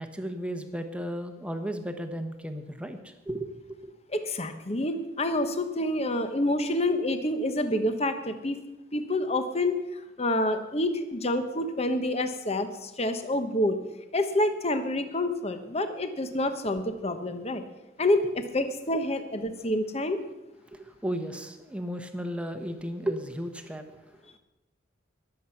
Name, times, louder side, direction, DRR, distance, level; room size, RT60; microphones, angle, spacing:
voice 1, 0.0-3.5 3.8-3.9 18.2-18.3 20.6-24.4, equal, 5° right, 6 dB, 1.1 m, -35 dB
voice 2, 4.1-8.6 8.9-13.8 14.1-17.6 18.0-18.2 18.5-20.2, left 1 dB, 30° left, 8 dB, 1.1 m, -28 dB
21.0 x 7.9 x 5.8 m, 1.0 s
head